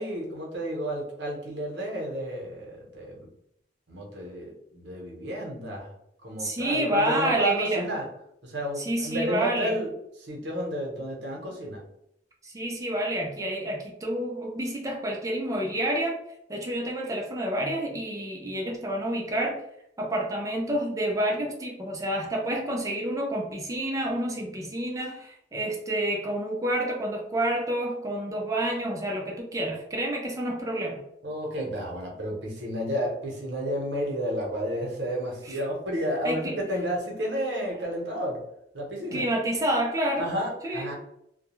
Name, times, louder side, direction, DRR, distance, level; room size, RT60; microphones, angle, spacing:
voice 1, 0.0-3.3 3.9-5.9 6.2-8.1 8.4-9.9 10.2-11.8 31.2-38.4 38.7-39.3 40.2-40.9, equal, 70° right, -1 dB, 0.8 m, -31 dB
voice 2, 6.4-7.9 8.8-9.8 12.4-16.2 16.5-19.6 20.0-31.0 35.5-35.6 36.2-36.6 39.1-40.3 40.6-40.9, right 1 dB, 20° right, 0 dB, 0.4 m, -29 dB
2.3 x 2.1 x 2.9 m, 0.76 s
head